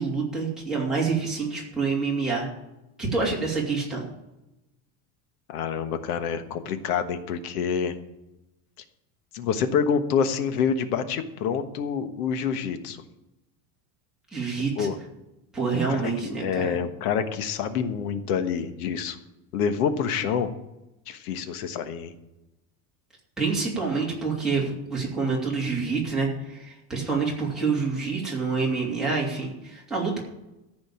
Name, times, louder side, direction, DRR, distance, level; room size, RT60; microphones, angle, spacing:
voice 1, 0.0-2.5 3.0-4.0 14.3-14.9 15.5-16.8 23.4-30.2, right 4 dB, ahead, -6 dB, 2.8 m, -27 dB
voice 2, 5.5-7.9 9.3-13.0 14.8-15.0 15.7-19.2 19.5-20.5 21.1-22.1, left 7 dB, 90° left, 9 dB, 1.4 m, -27 dB
14.0 x 5.3 x 8.7 m, 0.92 s
cardioid pair, 175°, 44 cm